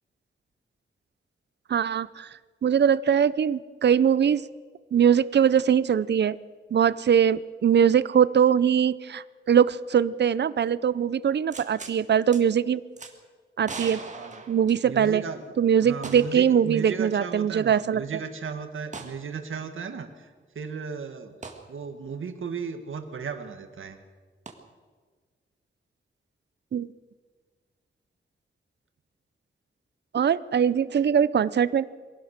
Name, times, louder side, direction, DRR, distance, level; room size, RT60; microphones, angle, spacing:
voice 1, 1.7-2.3 2.6-4.4 4.9-6.4 6.7-12.8 13.6-14.0 14.5-15.2 15.6-18.0 26.7-26.9 30.1-31.8, right 8 dB, 60° right, 17 dB, 0.6 m, -22 dB
sound 1, 11.5-12.0 12.3-12.4 13.0-13.1 13.6-15.2 16.0-16.5 16.8-16.9 18.9-19.2 21.4-21.6 24.5-24.6, right 4 dB, 35° right, 1.9 m, -39 dB
voice 2, 14.1-14.5 14.8-15.4 15.8-21.3 21.7-24.0, right 6 dB, 80° right, 7 dB, 1.8 m, -35 dB
23.0 x 17.0 x 6.6 m, 1.5 s
wide cardioid pair, 170°, 20 cm